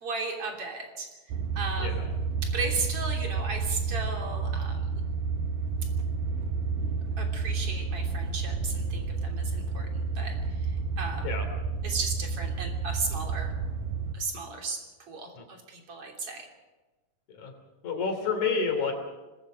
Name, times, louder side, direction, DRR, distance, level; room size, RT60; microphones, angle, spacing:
voice 1, 0.0-1.1 1.6-5.1 7.2-11.3 11.8-13.5 14.1-16.5, right 3 dB, 40° right, 2 dB, 4.0 m, -35 dB
sound 1, 1.3-14.2, right 4 dB, 70° right, 2.8 m, -30 dB
voice 2, 17.8-18.9, left 5 dB, 55° left, 5 dB, 4.4 m, -29 dB
25.0 x 20.5 x 5.2 m, 1.2 s
omnidirectional pair, 4.2 m